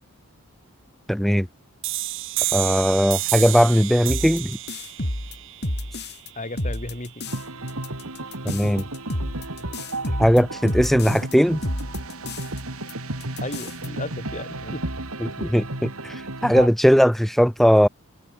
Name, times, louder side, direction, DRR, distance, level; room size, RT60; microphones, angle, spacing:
voice 1, 1.1-1.5 2.5-4.6 8.4-8.9 10.2-11.6 15.2-17.9, equal, ahead, 3.6 m, -19 dB
sound 1, 1.8-7.2, right 16 dB, 60° right, 2.3 m, -31 dB
sound 2, 4.1-6.3 6.6-7.4 7.7-11.3 11.6-12.6 12.9-13.0 13.2-13.9, left 1 dB, 50° left, 7.1 m, -30 dB
voice 2, 6.3-7.3 9.6-9.7 13.4-14.9, left 2 dB, 35° left, 4.3 m, -34 dB
sound 3, 7.3-16.7, right 2 dB, 80° right, 3.7 m, -33 dB
head